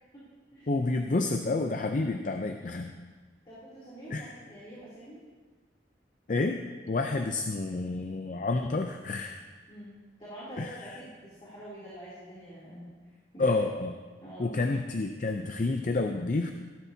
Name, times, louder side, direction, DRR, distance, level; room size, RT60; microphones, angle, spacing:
voice 1, 0.7-2.9 4.1-4.3 6.3-9.4 10.6-11.0 13.4-13.9 14.4-16.5, left 3 dB, 45° left, 5 dB, 0.5 m, -29 dB
voice 2, 3.4-5.2 9.7-9.9 10.2-12.9 13.3-13.5 14.2-14.5, right 1 dB, 30° left, -10 dB, 3.0 m, -46 dB
17.0 x 12.0 x 2.8 m, 1.4 s
head